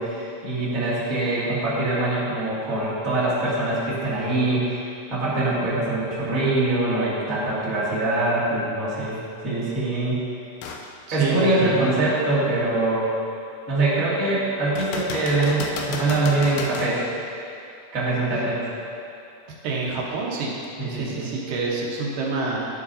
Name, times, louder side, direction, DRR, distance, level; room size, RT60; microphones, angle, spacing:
voice 1, 0.0-10.2 11.1-13.1 13.7-17.0 17.9-18.6 20.8-21.3, right 2 dB, 30° right, -10 dB, 2.1 m, -23 dB
sound 1, 10.6-10.9 11.5-11.6 14.8-17.0 20.6-20.7, left 4 dB, 75° left, 2.0 m, -32 dB
voice 2, 11.1-11.9 19.6-20.5 20.9-22.6, right 3 dB, 85° right, -3 dB, 2.8 m, -27 dB
12.0 x 7.5 x 2.7 m, 2.6 s
omnidirectional pair, 3.8 m